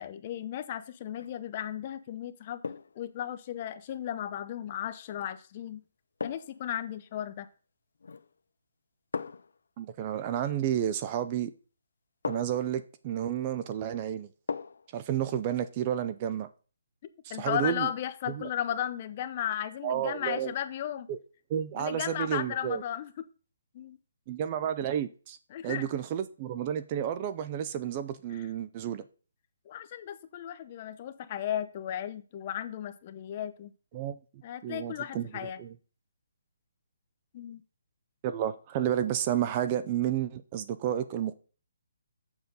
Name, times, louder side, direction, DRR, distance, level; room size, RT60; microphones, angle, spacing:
voice 1, 0.0-2.6 2.9-5.8 6.2-7.5 17.3-21.1 21.7-23.1 23.7-24.0 25.5-25.8 28.3-28.5 29.6-33.7 34.4-35.6 37.3-37.6, left 10 dB, 30° left, 0.7 m, -35 dB
sound 1, 1.1-1.4 2.6-3.1 5.1-5.3 6.2-6.7 8.0-8.4 9.1-9.6 11.2-11.4 12.2-12.7 14.5-14.9 15.3-15.4, left 5 dB, 70° left, 0.5 m, -38 dB
voice 2, 9.8-11.5 12.3-14.3 14.9-16.5 17.4-17.9 18.3-18.5 19.8-20.5 21.1-21.2 21.5-22.8 24.3-25.4 25.6-29.0 33.9-34.2 34.6-35.3 35.6-35.7 38.2-41.3, right 10 dB, 25° right, 0.4 m, -31 dB
7.1 x 6.9 x 3.9 m
hypercardioid pair, 165°, 0 cm